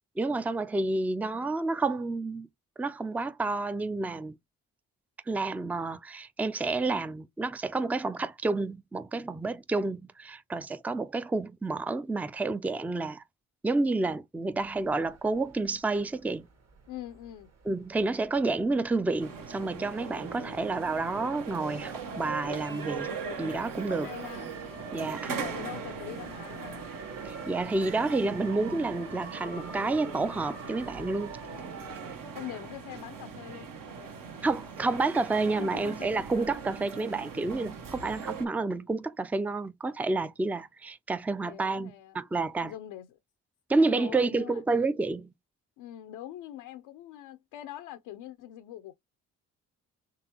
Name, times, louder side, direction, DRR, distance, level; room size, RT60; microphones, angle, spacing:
voice 1, 0.2-2.5 2.8-4.4 5.3-13.2 13.6-16.5 17.7-23.1 23.4-24.1 24.9-25.3 27.2-31.4 34.4-42.7 43.7-45.3, right 3 dB, 5° right, 0.4 m, -29 dB
sound 1, 14.6-32.2, right 4 dB, 45° right, 1.4 m, -48 dB
voice 2, 16.9-17.5 20.3-20.7 24.0-24.5 25.3-26.8 31.4-31.9 32.3-33.7 35.6-36.1 41.4-42.2 42.6-43.2 43.7-44.6 45.8-48.9, left 12 dB, 80° left, 0.6 m, -43 dB
sound 2, 19.2-38.5, right 5 dB, 60° right, 1.1 m, -40 dB
3.8 x 3.3 x 2.9 m
supercardioid pair, 60°, 38 cm